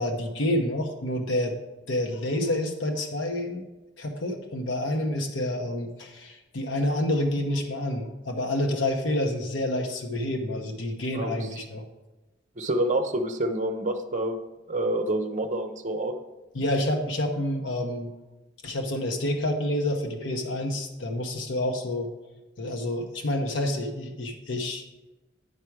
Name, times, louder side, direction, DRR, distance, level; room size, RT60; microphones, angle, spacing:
voice 1, 0.0-1.5 1.9-3.7 4.0-11.8 16.5-18.1 18.6-22.1 22.6-24.8, left 1 dB, 75° left, 2 dB, 0.9 m, -28 dB
voice 2, 12.6-14.4 14.7-16.1, right 1 dB, 40° right, 7 dB, 0.7 m, -27 dB
9.9 x 4.8 x 4.6 m, 1.1 s
head